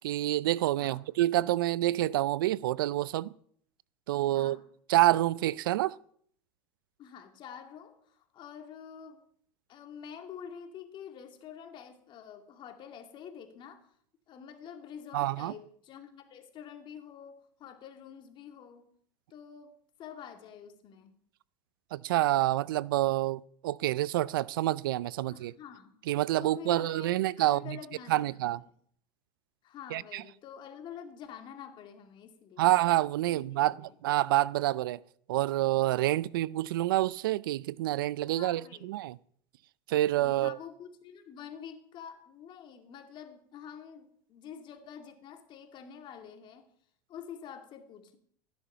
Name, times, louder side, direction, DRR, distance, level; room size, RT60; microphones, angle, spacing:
voice 1, 0.0-3.3 4.1-4.6 4.9-6.0 15.1-15.5 21.9-25.5 26.1-27.8 28.1-28.6 29.9-30.2 32.6-33.8 34.0-35.0 35.3-39.2 39.9-40.6, right 15 dB, 85° right, 0.5 m, -27 dB
voice 2, 4.3-4.6 7.0-9.2 9.7-13.9 14.3-18.9 19.3-21.1 25.3-25.9 26.4-28.4 29.6-32.7 33.3-33.9 38.3-38.9 40.1-46.7 47.1-48.2, left 8 dB, 45° left, 2.4 m, -47 dB
14.5 x 10.0 x 5.7 m
supercardioid pair, 110°, 11 cm